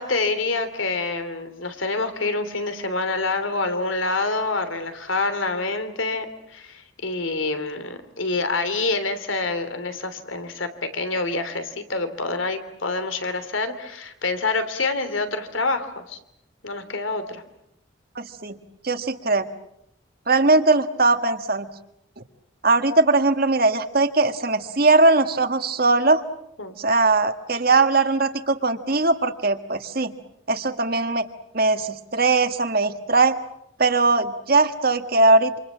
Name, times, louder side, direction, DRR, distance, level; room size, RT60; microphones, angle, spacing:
voice 1, 0.0-16.2 16.6-17.4 26.6-26.7, left 3 dB, 85° left, 10 dB, 3.1 m, -27 dB
voice 2, 18.1-18.6 18.8-19.4 20.3-21.7 22.6-26.2 26.8-30.1 30.5-31.2 31.5-33.4 33.8-35.6, right 3 dB, 50° right, 8 dB, 1.7 m, -20 dB
28.0 x 27.5 x 7.5 m, 0.77 s
head